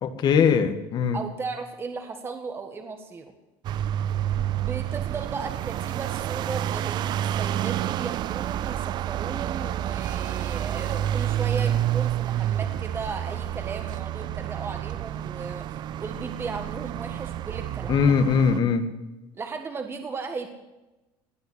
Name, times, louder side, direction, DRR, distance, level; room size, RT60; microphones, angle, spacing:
voice 1, 0.0-1.2 17.9-18.9, left 6 dB, 40° left, 9 dB, 1.7 m, -21 dB
voice 2, 1.1-3.3 4.5-18.1 19.3-20.5, right 4 dB, 20° right, 5 dB, 1.6 m, -36 dB
sound 1, 3.6-18.6, right 11 dB, 45° right, 0.4 m, -29 dB
18.5 x 9.2 x 8.0 m, 1.0 s
cardioid pair, 140°, 11 cm